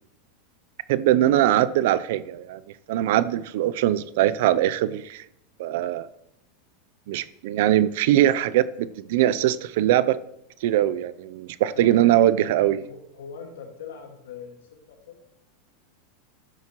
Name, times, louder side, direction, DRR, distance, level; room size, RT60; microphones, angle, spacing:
voice 1, 0.9-2.6 2.9-5.2 5.6-6.1 7.1-10.2 10.6-12.9, right 13 dB, 70° right, 0.5 m, -21 dB
voice 2, 11.7-12.4 12.9-15.2, left 6 dB, 85° left, 1.8 m, -41 dB
12.5 x 9.4 x 3.0 m
supercardioid pair, 120°, 0 cm